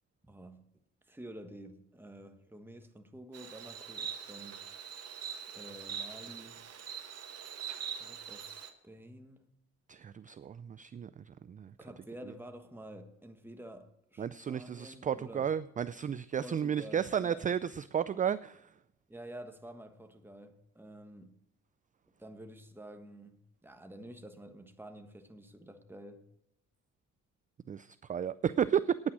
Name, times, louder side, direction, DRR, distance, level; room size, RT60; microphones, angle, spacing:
voice 1, 0.2-0.7 1.1-4.7 5.5-6.6 7.9-9.5 11.8-15.5 16.4-17.4 19.1-21.4 22.2-26.3, right 1 dB, 5° right, 1.4 m, -49 dB
Insect, 3.3-8.7, right 7 dB, 55° right, 1.4 m, -43 dB
voice 2, 9.9-11.7 14.2-18.7 27.7-29.0, right 8 dB, 25° right, 0.3 m, -33 dB
9.6 x 8.7 x 6.1 m
cardioid pair, 90°, 30 cm